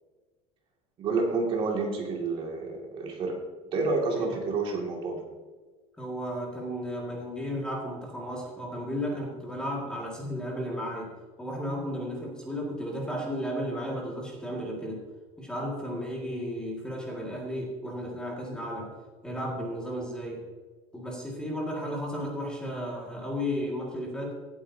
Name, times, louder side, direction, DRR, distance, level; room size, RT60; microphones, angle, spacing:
voice 1, 1.0-3.4 3.7-5.2, right 3 dB, 35° right, 0 dB, 2.2 m, -29 dB
voice 2, 6.0-11.1 11.4-15.0 15.4-18.9 19.2-20.4 20.9-24.3, equal, 5° left, -2 dB, 1.9 m, -34 dB
18.0 x 8.5 x 2.7 m, 1.3 s
cardioid pair, 170°, 15 cm